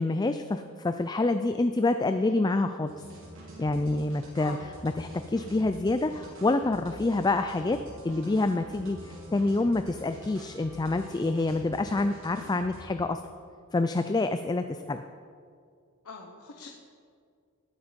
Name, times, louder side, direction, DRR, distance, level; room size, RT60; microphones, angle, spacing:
voice 1, 0.0-2.9 3.6-4.6 4.8-7.8 8.0-13.2 13.7-15.0, left 2 dB, 20° left, 9 dB, 0.3 m, -27 dB
sound 1, 2.9-12.8, equal, 65° right, 4.1 m, -46 dB
voice 2, 16.0-16.7, left 3 dB, 85° left, 1 dB, 1.2 m, -43 dB
19.5 x 8.3 x 5.2 m, 2.2 s
head